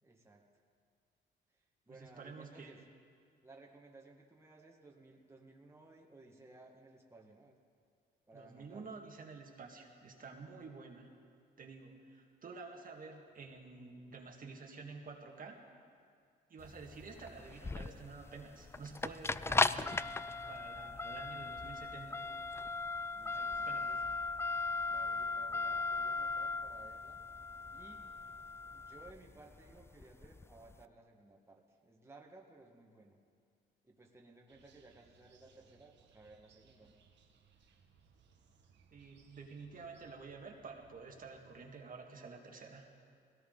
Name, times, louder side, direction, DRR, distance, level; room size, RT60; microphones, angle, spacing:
voice 1, 0.0-0.5 1.6-2.8 3.4-7.6 8.3-9.0 23.1-24.0 24.8-27.2 27.7-28.1 28.7-33.2 33.8-37.0, right 2 dB, 15° right, -1 dB, 1.8 m, -58 dB
voice 2, 1.9-2.7 8.3-11.1 11.6-15.6 16.5-20.0 20.5-22.4 23.3-24.0 38.9-42.9, right 4 dB, 45° right, 1 dB, 1.9 m, -50 dB
sound 1, 16.6-30.7, left 3 dB, 15° left, 0.3 m, -37 dB
sound 2, 34.5-41.7, right 5 dB, 65° right, 1.5 m, -67 dB
20.5 x 17.0 x 4.0 m, 2.2 s
cardioid pair, 90°, 20 cm